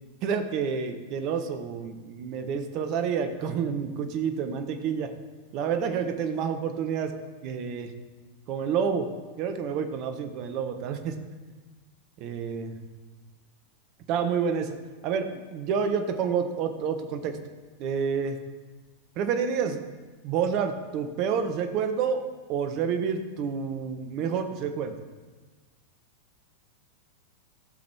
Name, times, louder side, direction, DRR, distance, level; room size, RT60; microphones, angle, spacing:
voice 1, 0.2-5.1 5.5-7.1 7.4-7.9 8.5-9.1 9.4-11.2 12.2-12.7 14.1-14.8 15.0-17.4 17.8-18.4 19.1-19.8 20.2-22.2 22.5-24.9, right 6 dB, 40° right, 7 dB, 1.3 m, -29 dB
15.0 x 6.5 x 4.8 m, 1.3 s
figure-of-eight pair, 90°, 0 cm